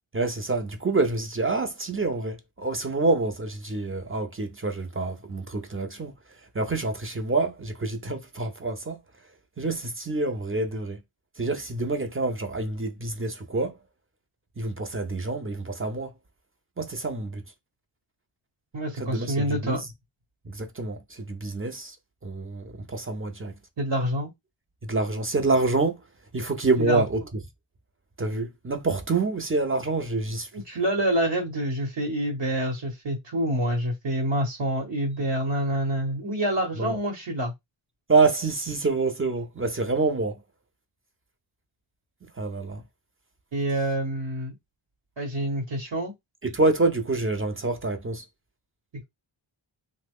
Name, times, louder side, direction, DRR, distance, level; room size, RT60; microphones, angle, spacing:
voice 1, 0.1-6.1 6.5-9.0 9.6-11.0 11.4-13.7 14.6-16.1 16.8-17.4 19.0-19.8 20.5-22.0 22.2-23.5 24.8-26.0 26.3-27.2 28.2-30.5 36.8-37.0 38.1-40.4 42.4-42.8 46.4-48.2, right 3 dB, 30° right, 0.5 m, -27 dB
voice 2, 18.7-19.8 23.8-24.3 26.8-27.0 30.5-37.5 43.5-44.5 45.2-46.1, right 1 dB, 60° right, 1.0 m, -27 dB
3.0 x 2.1 x 3.5 m
wide cardioid pair, 90°, 48 cm